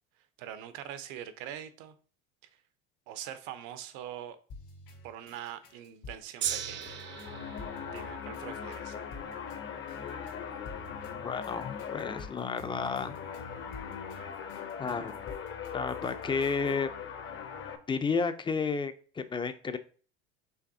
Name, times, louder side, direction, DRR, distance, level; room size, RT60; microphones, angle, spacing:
voice 1, 0.2-1.9 2.5-2.6 3.1-4.4 5.0-7.0 7.8-9.0, right 10 dB, 70° right, 11 dB, 0.8 m, -43 dB
sound 1, 4.5-16.7, left 3 dB, 65° left, 2.3 m, -50 dB
Gong, 6.4-12.8 13.5-13.6, right 9 dB, 40° right, 0.6 m, -41 dB
sound 2, 6.7-17.8, left 7 dB, 40° left, 0.8 m, -41 dB
voice 2, 10.0-10.3 11.1-13.1 14.8-15.2 15.7-16.9 17.9-19.8, left 5 dB, 15° left, 10 dB, 0.5 m, -32 dB
5.8 x 3.3 x 2.7 m, 0.40 s
supercardioid pair, 100°, 31 cm